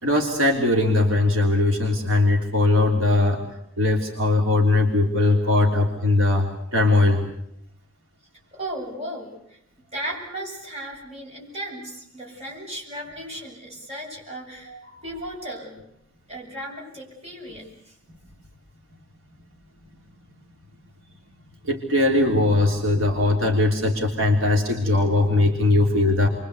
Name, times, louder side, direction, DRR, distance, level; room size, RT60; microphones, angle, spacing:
voice 1, 0.0-3.4 3.8-7.2 21.6-26.3, left 2 dB, 70° right, 1 dB, 3.3 m, -20 dB
voice 2, 8.5-15.8 16.3-18.0, right 1 dB, 30° right, -2 dB, 7.8 m, -36 dB
29.0 x 23.5 x 8.2 m, 0.76 s
head